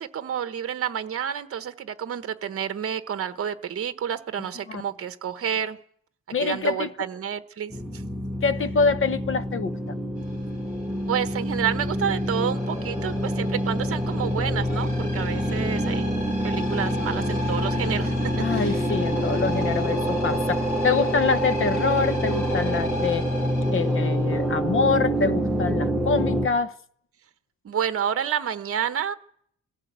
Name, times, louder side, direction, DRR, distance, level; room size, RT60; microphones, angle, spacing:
voice 1, 0.0-5.8 6.4-8.0 11.1-16.2 16.4-18.1 18.5-18.8 27.6-29.1, right 9 dB, 50° right, 1.0 m, -29 dB
voice 2, 6.3-6.9 8.4-10.0 18.4-23.3 23.7-26.8, left 4 dB, 45° left, 0.9 m, -25 dB
sound 1, 7.7-26.5, equal, ahead, 1.0 m, -26 dB
sound 2, 10.2-24.7, left 1 dB, 85° left, 6.4 m, -36 dB
21.0 x 15.5 x 8.0 m
wide cardioid pair, 165°, 30 cm